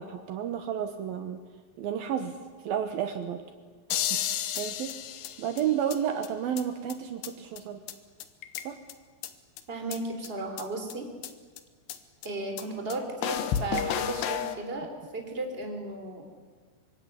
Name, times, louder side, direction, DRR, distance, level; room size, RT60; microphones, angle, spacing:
voice 1, 0.0-1.4 1.8-2.4 2.6-3.4 3.9-5.0 5.4-7.8 8.6-8.8, right 9 dB, 70° right, 8 dB, 2.9 m, -32 dB
sound 1, 3.9-6.0 6.2-6.3 6.6-6.7 6.9-7.0 7.2-7.3 7.6-7.7 7.9-8.0 8.2-8.9 9.2-9.3 9.6-9.7 9.9-10.0 10.2-10.3 10.6-10.7 10.9-11.0 11.2-11.3 11.6-11.7 11.9-12.0 12.2-12.3 12.6-12.7 12.9-13.0 13.2-14.6, left 10 dB, 90° left, 3.5 m, -31 dB
voice 2, 9.7-11.1 12.2-16.2, right 2 dB, 15° right, 4 dB, 3.5 m, -35 dB
25.0 x 24.0 x 9.9 m, 1.5 s
omnidirectional pair, 4.7 m